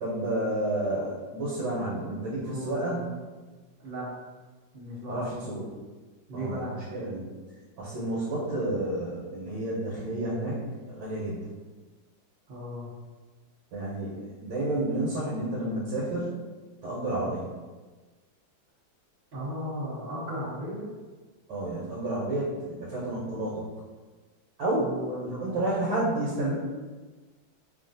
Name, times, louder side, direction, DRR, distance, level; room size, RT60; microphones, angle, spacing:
voice 1, 0.0-3.1 5.1-5.6 6.3-7.3 7.8-10.6 10.9-11.4 13.7-16.4 16.8-17.5 21.5-23.6 24.6-24.9 25.3-26.5, right 1 dB, 70° right, -7 dB, 1.4 m, -30 dB
voice 2, 2.4-3.2 3.8-4.1 4.7-5.7 6.3-6.8 12.5-12.9 19.3-20.9 24.8-25.6, equal, 85° right, -9 dB, 0.5 m, -36 dB
3.1 x 2.4 x 2.5 m, 1.3 s
omnidirectional pair, 2.1 m